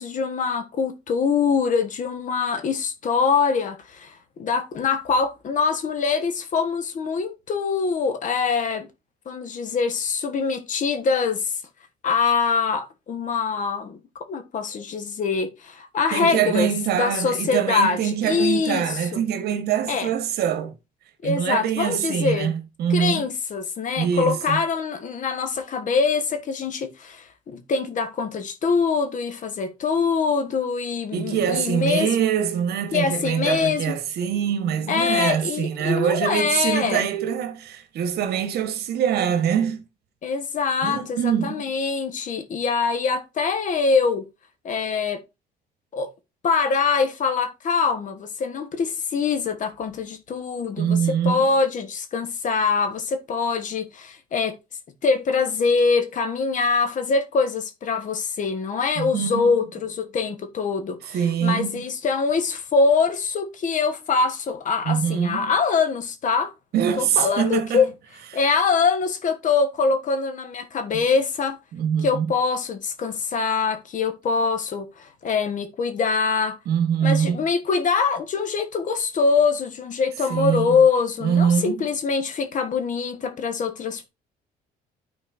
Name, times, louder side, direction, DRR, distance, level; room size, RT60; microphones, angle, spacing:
voice 1, 0.0-8.9 9.2-11.5 12.0-16.7 17.0-19.2 19.9-20.1 21.2-22.5 22.9-32.1 32.9-34.0 34.9-37.1 40.2-44.2 44.6-45.2 45.9-46.1 46.4-54.6 55.0-66.5 67.0-67.9 68.3-71.6 72.0-76.6 77.0-84.1, left 5 dB, 50° left, 1.4 m, -24 dB
voice 2, 16.1-20.8 21.2-23.2 24.0-24.6 31.1-39.8 40.8-41.7 50.8-51.5 59.0-59.7 61.1-61.9 64.8-65.5 66.7-67.8 70.9-71.0 71.7-72.3 76.7-77.4 80.3-80.8 81.2-81.9, right 8 dB, 70° right, 1.4 m, -24 dB
12.0 x 4.4 x 2.6 m
cardioid pair, 110°, 17 cm